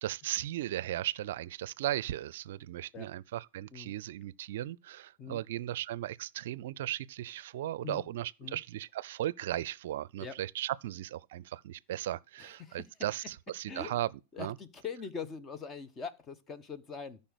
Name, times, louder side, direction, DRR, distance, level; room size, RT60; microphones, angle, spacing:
voice 1, 0.0-14.1 14.4-14.6, right 13 dB, 60° right, 0.5 m, -36 dB
voice 2, 12.4-12.9 13.7-14.0 14.3-17.2, left 6 dB, 25° left, 1.2 m, -42 dB
14.0 x 5.5 x 6.4 m
figure-of-eight pair, 95°, 0 cm